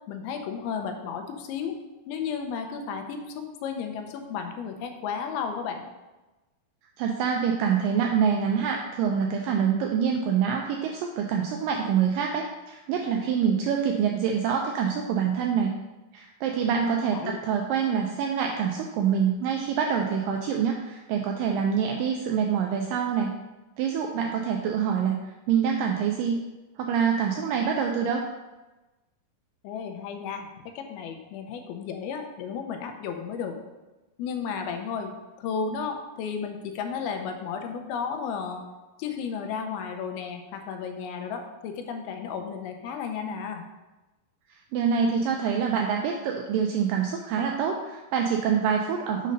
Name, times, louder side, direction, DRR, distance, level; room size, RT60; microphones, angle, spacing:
voice 1, 0.1-1.7 2.1-5.9 16.9-17.4 29.6-30.5 30.8-33.6 34.2-38.7 39.0-43.7, left 6 dB, 85° left, 5 dB, 2.6 m, -33 dB
voice 2, 7.0-15.8 16.1-23.3 23.8-25.2 25.5-26.4 26.8-28.2 44.5-49.3, right 7 dB, 85° right, 2 dB, 1.9 m, -26 dB
6.4 x 4.0 x 5.2 m, 1.1 s
omnidirectional pair, 4.4 m